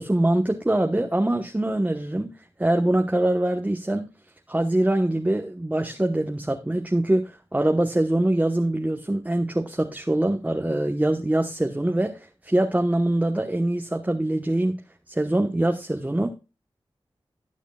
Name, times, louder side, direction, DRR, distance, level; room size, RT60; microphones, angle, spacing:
voice 1, 0.0-2.3 2.6-4.1 4.5-14.8 15.1-16.3, right 1 dB, 15° right, 1.1 m, -23 dB
19.0 x 6.6 x 2.3 m
cardioid pair, 55°, 9 cm